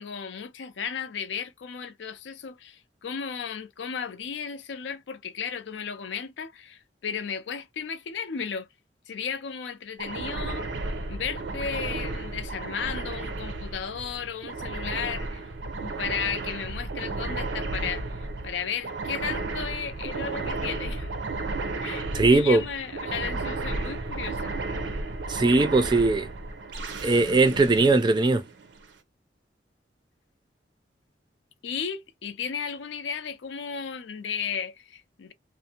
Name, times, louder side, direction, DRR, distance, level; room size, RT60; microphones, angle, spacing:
voice 1, 0.0-8.7 9.1-10.7 11.1-15.4 15.8-18.0 18.4-21.2 21.8-24.5 31.6-35.3, left 6 dB, 85° left, 0.5 m, -34 dB
sound 1, 10.0-28.8, right 3 dB, 85° right, 0.6 m, -33 dB
voice 2, 22.1-22.6 25.3-26.3 27.0-28.4, right 3 dB, 25° right, 0.4 m, -20 dB
2.5 x 2.0 x 2.8 m
head